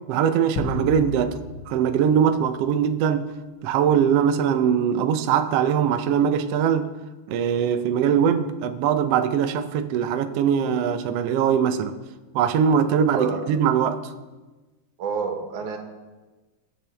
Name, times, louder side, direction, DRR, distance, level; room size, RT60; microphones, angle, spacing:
voice 1, 0.1-1.4 1.7-3.2 3.6-6.9 7.3-11.9 12.3-14.0, right 8 dB, 90° right, 1.3 m, -21 dB
sound 1, 0.6-3.1, left 3 dB, 85° left, 1.1 m, -34 dB
voice 2, 15.0-15.8, right 5 dB, 70° right, 2.8 m, -28 dB
22.0 x 8.8 x 3.4 m
omnidirectional pair, 3.7 m